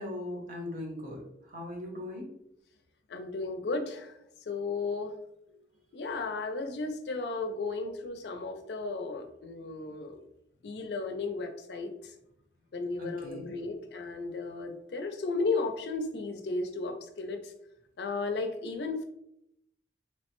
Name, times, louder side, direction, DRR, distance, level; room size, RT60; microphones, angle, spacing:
voice 1, 0.0-2.3 13.0-13.5, left 1 dB, 50° right, 0 dB, 0.7 m, -39 dB
voice 2, 3.1-4.2 4.5-5.1 5.9-10.2 10.6-12.1 12.7-17.5 18.0-19.0, left 3 dB, 70° left, 6 dB, 0.4 m, -34 dB
3.1 x 2.1 x 2.9 m, 0.78 s
head